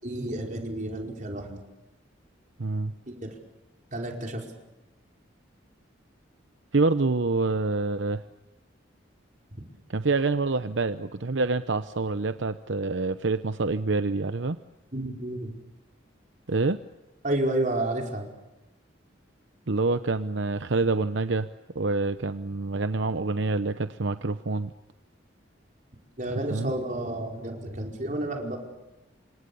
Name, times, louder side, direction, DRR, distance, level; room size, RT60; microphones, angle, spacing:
voice 1, 0.0-1.6 3.1-3.3 3.9-4.4 14.9-15.6 17.2-18.3 26.2-28.6, right 1 dB, 40° right, 1 dB, 4.9 m, -30 dB
voice 2, 2.6-2.9 6.7-8.2 9.9-14.6 16.5-16.8 19.7-21.5 21.7-24.7 26.5-26.7, right 3 dB, 70° right, 10 dB, 0.8 m, -26 dB
28.5 x 26.0 x 7.0 m, 1.0 s
head